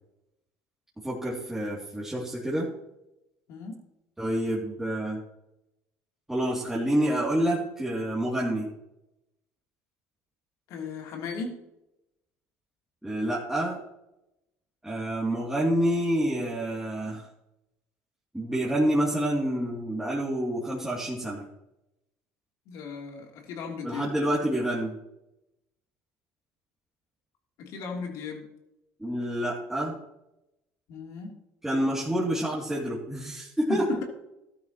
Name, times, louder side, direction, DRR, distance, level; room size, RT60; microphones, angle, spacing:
voice 1, 1.0-2.7 4.2-5.2 6.3-8.7 13.0-13.8 14.8-17.2 18.3-21.4 23.8-25.0 29.0-30.0 31.6-33.9, right 1 dB, 5° right, -6 dB, 2.7 m, -28 dB
voice 2, 3.5-3.8 10.7-11.7 22.7-24.1 27.6-28.5 30.9-31.4 33.7-34.0, left 4 dB, 70° left, 1 dB, 3.2 m, -36 dB
13.5 x 12.5 x 3.0 m, 0.89 s
supercardioid pair, 95°, 6 cm